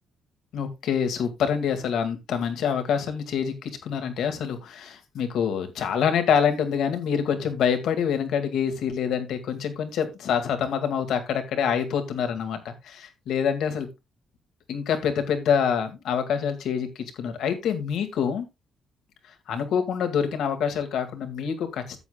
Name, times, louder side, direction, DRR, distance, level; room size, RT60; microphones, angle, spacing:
voice 1, 0.5-13.9 14.7-18.5 19.5-22.0, left 7 dB, 80° left, 7 dB, 2.1 m, -26 dB
13.0 x 8.3 x 2.3 m, 0.23 s
cardioid pair, 110°, 0 cm